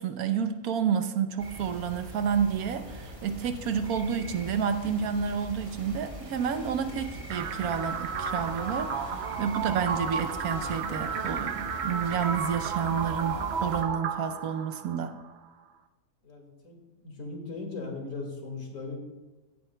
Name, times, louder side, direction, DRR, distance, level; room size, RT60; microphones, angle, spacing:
voice 1, 0.0-15.1, right 7 dB, 75° right, 8 dB, 1.2 m, -30 dB
sound 1, 1.4-13.8, equal, 20° right, 1.6 m, -42 dB
sound 2, 7.3-15.3, right 6 dB, 60° right, 0.7 m, -33 dB
voice 2, 16.2-19.0, left 3 dB, 60° left, 1 dB, 2.3 m, -38 dB
15.5 x 10.0 x 2.2 m, 1.2 s
omnidirectional pair, 1.6 m